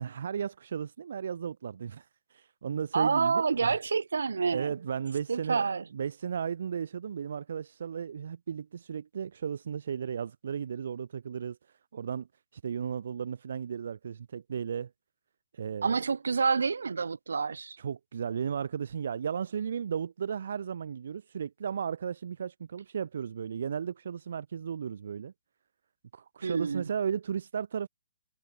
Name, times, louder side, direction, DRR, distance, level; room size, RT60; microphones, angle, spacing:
voice 1, 0.0-3.8 4.5-5.6 5.9-12.3 12.5-14.9 15.5-16.0 17.8-25.3 26.1-27.9, right 7 dB, 65° right, 1.8 m, -35 dB
voice 2, 2.9-4.8 5.3-5.8 15.8-17.8 26.4-26.9, right 5 dB, 90° right, 5.9 m, -28 dB
hypercardioid pair, 155°, 0 cm